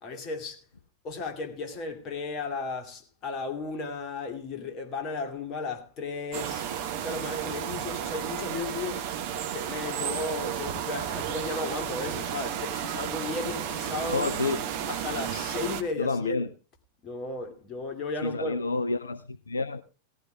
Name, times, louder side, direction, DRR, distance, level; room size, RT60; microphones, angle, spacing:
voice 1, 0.0-0.6 1.0-6.7 7.0-9.1 9.5-14.3 14.9-16.5 17.0-18.6, left 3 dB, 35° left, 2.5 m, -35 dB
sound 1, 6.3-15.8, right 9 dB, 50° right, 1.5 m, -33 dB
voice 2, 14.1-14.6 16.0-16.5 18.2-19.8, left 3 dB, 75° left, 0.6 m, -29 dB
18.0 x 14.5 x 2.3 m
figure-of-eight pair, 90°, 0 cm